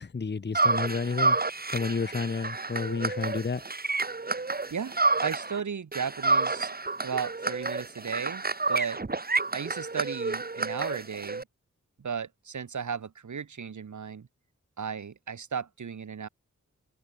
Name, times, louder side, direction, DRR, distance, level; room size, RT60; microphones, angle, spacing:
voice 1, 0.0-3.6, left 4 dB, 35° left, 1.0 m, -31 dB
sound 1, 0.5-5.6 5.9-11.4, right 3 dB, 30° right, 1.7 m, -29 dB
voice 2, 5.2-6.7 7.0-8.4 8.7-9.0 9.5-11.4 12.0-14.3 14.8-16.3, right 6 dB, 75° right, 2.2 m, -35 dB
wide cardioid pair, 70°, 30 cm